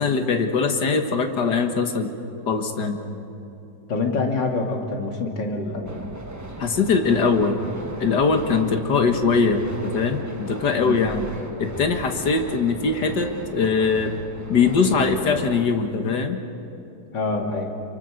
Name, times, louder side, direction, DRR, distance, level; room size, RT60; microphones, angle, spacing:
voice 1, 0.0-2.1 2.5-3.0 6.6-7.6 8.0-11.3 11.6-14.2 14.5-16.4, left 5 dB, 70° left, 5 dB, 2.2 m, -21 dB
voice 2, 3.9-5.9 10.7-10.9 17.1-17.8, left 3 dB, 85° left, 1 dB, 3.3 m, -26 dB
sound 1, 5.9-15.6, right 1 dB, 10° right, 1.2 m, -37 dB
28.0 x 24.0 x 6.6 m, 3.0 s
omnidirectional pair, 1.9 m